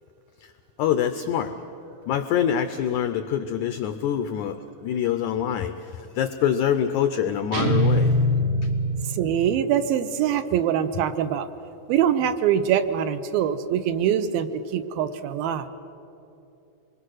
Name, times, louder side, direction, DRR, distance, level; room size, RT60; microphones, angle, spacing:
voice 1, 0.8-1.5 2.1-8.1, left 9 dB, 85° left, 9 dB, 1.7 m, -25 dB
sound 1, 7.5-9.6, equal, 60° right, 2.5 m, -22 dB
voice 2, 9.1-11.5 11.9-15.7, right 9 dB, 80° right, 10 dB, 2.6 m, -23 dB
26.5 x 22.0 x 6.4 m, 2.8 s
omnidirectional pair, 4.3 m